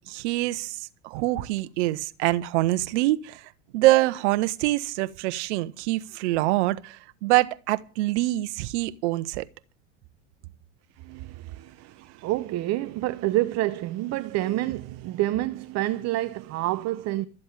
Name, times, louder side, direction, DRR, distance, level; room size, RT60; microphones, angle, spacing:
voice 1, 0.1-9.4, right 18 dB, 70° right, 1.1 m, -25 dB
voice 2, 11.0-17.3, right 16 dB, 45° right, 0.8 m, -28 dB
13.0 x 7.8 x 8.9 m
hypercardioid pair, 95°, 36 cm